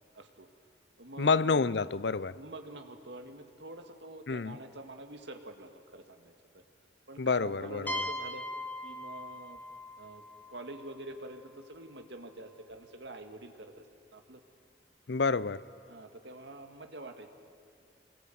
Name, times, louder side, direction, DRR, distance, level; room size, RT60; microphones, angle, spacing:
voice 1, 0.1-0.5 1.0-1.7 2.3-6.6 7.1-8.5 8.8-9.6 10.0-10.2 10.5-13.8 14.1-14.4 15.9-17.3, right 2 dB, 75° right, 6 dB, 2.1 m, -46 dB
voice 2, 1.2-2.4 4.3-4.6 7.2-8.1 15.1-15.6, left 4 dB, 70° left, 18 dB, 0.6 m, -28 dB
sound 1, 7.9-11.5, left 1 dB, 10° left, 1.2 m, -40 dB
25.0 x 21.0 x 9.4 m, 2.3 s
head